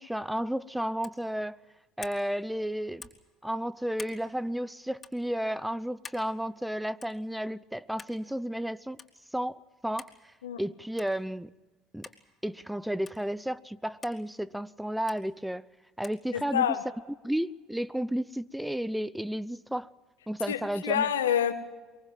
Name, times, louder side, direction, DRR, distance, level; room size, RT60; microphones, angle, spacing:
voice 1, 0.0-1.6 2.0-3.1 3.4-9.0 9.3-11.5 11.9-12.1 12.4-15.6 16.0-16.8 17.2-19.9 20.3-21.1, equal, 5° right, 0.8 m, -32 dB
sound 1, 1.0-1.2 2.0-2.2 3.0-3.3 4.0-4.2 5.0-5.2 6.0-6.3 7.0-7.2 8.0-8.2 9.0-9.1 10.0-10.2 11.0-11.2 12.0-12.2 13.1-13.2 14.0-14.2 15.1-15.2 16.0-16.2, left 4 dB, 25° left, 3.7 m, -46 dB
voice 2, 16.3-16.8 20.5-21.5, left 9 dB, 85° left, 1.7 m, -27 dB
23.5 x 23.0 x 7.5 m
hypercardioid pair, 70°, 0 cm